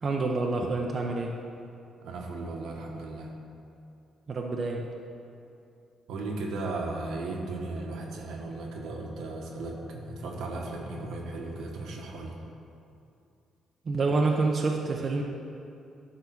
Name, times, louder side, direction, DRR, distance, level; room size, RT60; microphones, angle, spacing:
voice 1, 0.0-1.3 4.3-4.9 13.9-15.2, right 3 dB, 45° right, 0 dB, 0.7 m, -27 dB
voice 2, 2.0-3.3 6.1-12.3, right 2 dB, 80° right, 0 dB, 1.3 m, -36 dB
10.5 x 3.8 x 6.0 m, 2.6 s
cardioid pair, 90°, 0 cm